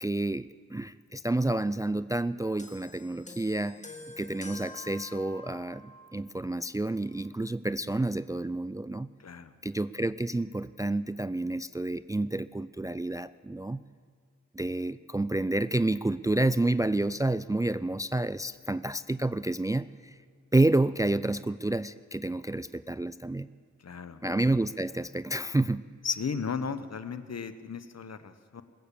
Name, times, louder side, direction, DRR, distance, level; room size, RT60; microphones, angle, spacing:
voice 1, 0.0-3.8 4.2-9.1 9.6-13.8 14.5-20.1 20.5-23.5 24.2-25.8, right 2 dB, 10° right, 15 dB, 0.3 m, -29 dB
sound 1, 2.6-6.2 7.1-7.2, left 1 dB, 25° left, 1.9 m, -47 dB
voice 2, 9.2-9.5 23.8-24.2 26.0-28.6, left 5 dB, 60° left, 12 dB, 0.9 m, -35 dB
21.0 x 8.7 x 6.8 m, 2.2 s
cardioid pair, 50°, 30 cm